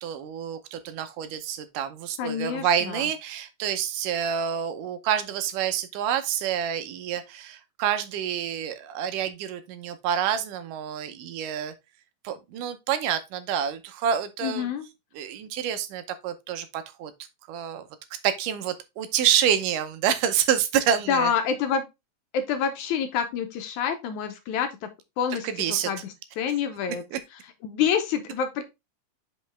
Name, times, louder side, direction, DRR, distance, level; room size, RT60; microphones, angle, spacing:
voice 1, 0.0-11.7 12.2-14.7 15.2-17.1 17.5-17.9 18.2-21.3 25.4-25.9 27.1-27.2, right 9 dB, 80° right, 2.3 m, -27 dB
voice 2, 2.2-3.1 14.4-14.9 21.1-21.9 22.3-24.9 25.2-27.0 27.6-28.6, left 7 dB, 75° left, 2.0 m, -27 dB
5.6 x 5.2 x 3.2 m
omnidirectional pair, 3.8 m